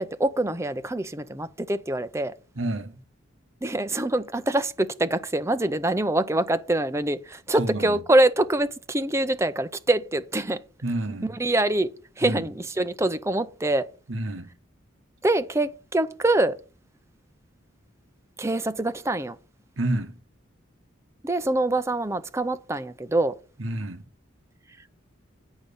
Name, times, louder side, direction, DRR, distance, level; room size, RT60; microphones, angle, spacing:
voice 1, 0.0-2.3 3.6-10.6 10.9-11.9 12.2-13.9 15.2-16.5 18.4-19.4 21.2-23.4, right 1 dB, 15° right, 0.6 m, -25 dB
voice 2, 2.6-3.0 7.6-8.0 10.8-11.3 12.2-12.5 14.1-14.5 19.8-20.2 23.6-24.0, right 1 dB, 75° right, 1.1 m, -29 dB
8.9 x 5.2 x 6.8 m
head